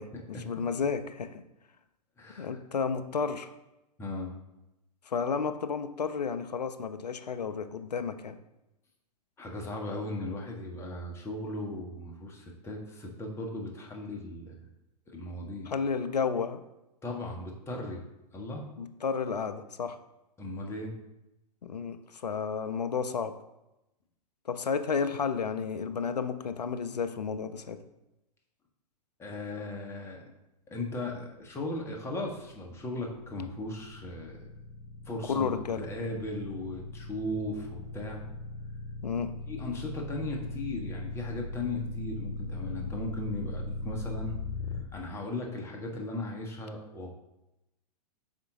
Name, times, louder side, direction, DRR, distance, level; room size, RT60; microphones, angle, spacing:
voice 1, 0.0-1.4 2.4-3.5 5.1-8.4 15.7-16.6 18.8-20.0 21.6-23.3 24.5-27.8 35.3-35.8 39.0-39.3, left 5 dB, 80° left, 10 dB, 0.4 m, -32 dB
voice 2, 2.2-2.6 4.0-4.4 9.4-14.7 15.1-15.7 17.0-18.0 18.3-18.7 20.4-20.9 29.2-30.2 30.7-34.5 35.0-38.2 39.5-44.4 44.9-47.2, left 2 dB, 10° left, 1 dB, 0.9 m, -37 dB
sound 1, 31.5-44.8, left 2 dB, 55° left, 0.9 m, -39 dB
5.7 x 4.4 x 3.7 m, 0.93 s
figure-of-eight pair, 105°, 21 cm